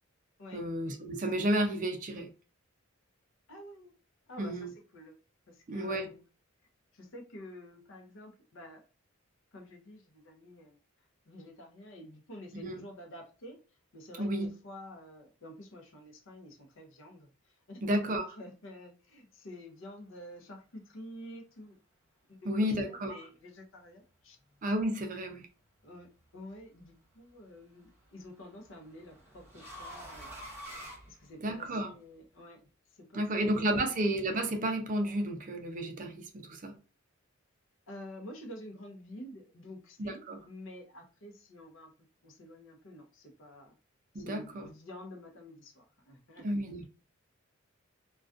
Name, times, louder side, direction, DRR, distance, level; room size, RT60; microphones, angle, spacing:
voice 1, 0.5-2.3 4.4-4.7 5.7-6.1 12.5-12.8 14.2-14.5 17.8-18.2 22.5-23.2 24.6-25.5 31.4-31.9 33.1-36.7 40.0-40.4 44.1-44.7 46.4-46.8, right 1 dB, 40° right, 0.4 m, -32 dB
voice 2, 3.5-3.9 4.3-5.2 5.5-6.2 6.9-8.8 9.5-10.8 11.3-13.6 13.9-21.8 22.3-24.4 25.8-30.4 31.1-32.6 32.9-34.0 37.9-41.9 42.2-43.8 44.1-46.5, left 1 dB, 65° left, 0.6 m, -49 dB
sound 1, 25.9-26.4 27.8-31.8, equal, 10° right, 1.0 m, -48 dB
2.3 x 2.2 x 2.4 m
head